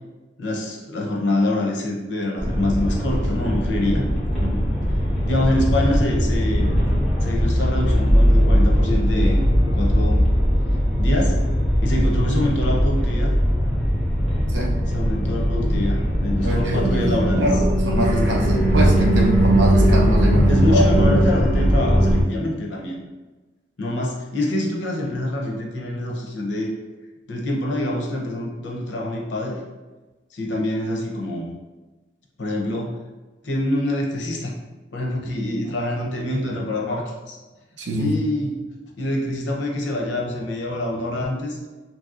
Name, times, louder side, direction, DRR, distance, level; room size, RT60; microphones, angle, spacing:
voice 1, 0.4-4.1 4.4-4.6 5.3-6.7 7.2-10.3 11.0-11.4 11.8-13.3 14.9-17.5 20.5-23.0 23.8-26.7 27.3-29.6 30.3-31.5 32.4-33.0 33.4-34.5 34.9-37.4 38.0-38.6 39.0-41.6, left 1 dB, 90° left, -1 dB, 0.6 m, -25 dB
sound 1, 2.4-22.2, equal, ahead, 0.9 m, -19 dB
voice 2, 16.4-21.2 37.8-38.1, equal, 85° right, 0 dB, 0.6 m, -23 dB
3.0 x 2.7 x 2.4 m, 1.2 s
head